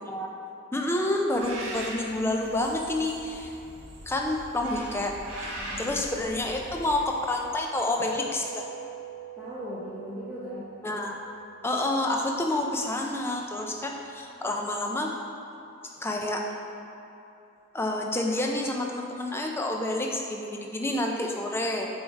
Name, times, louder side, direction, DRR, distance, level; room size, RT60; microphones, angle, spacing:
voice 1, 0.7-3.5 4.1-8.6 10.8-11.2 11.6-15.1 16.0-16.4 17.7-21.9, left 1 dB, 10° left, 1 dB, 0.4 m, -29 dB
Bird, 1.3-7.7, right 1 dB, 70° right, 1.2 m, -41 dB
voice 2, 5.6-6.0 9.4-10.7, equal, 10° right, -11 dB, 0.7 m, -39 dB
sound 1, 8.0-12.6, right 4 dB, 50° right, 1.0 m, -43 dB
6.5 x 3.6 x 4.1 m, 2.8 s
head